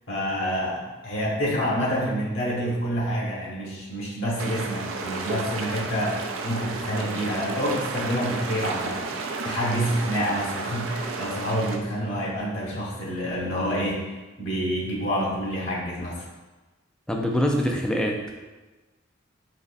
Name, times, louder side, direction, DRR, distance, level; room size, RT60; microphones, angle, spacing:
voice 1, 0.1-9.1 9.4-14.0 14.4-16.3, equal, 70° left, -4 dB, 1.1 m, -27 dB
sound 1, 4.4-11.8, right 4 dB, 80° right, 0.4 m, -32 dB
voice 2, 17.1-18.3, equal, 5° left, 1 dB, 0.3 m, -24 dB
4.0 x 3.1 x 2.5 m, 1.2 s
head